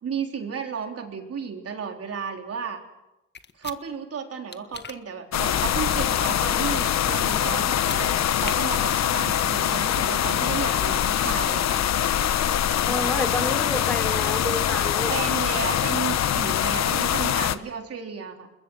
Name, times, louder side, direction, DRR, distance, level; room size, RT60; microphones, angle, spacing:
voice 1, 0.0-2.8 3.6-8.1 8.3-11.9 15.1-18.5, right 6 dB, 50° right, 4 dB, 3.8 m, -33 dB
sound 1, 3.3-3.8 4.5-5.0 7.7-8.0 8.4-8.6, left 6 dB, 35° left, 1.5 m, -38 dB
sound 2, 5.3-17.6, left 10 dB, 60° left, 1.1 m, -23 dB
voice 2, 12.9-15.3, left 1 dB, 5° left, 5 dB, 4.0 m, -30 dB
28.5 x 21.5 x 6.4 m, 0.94 s
cardioid pair, 90°, 30 cm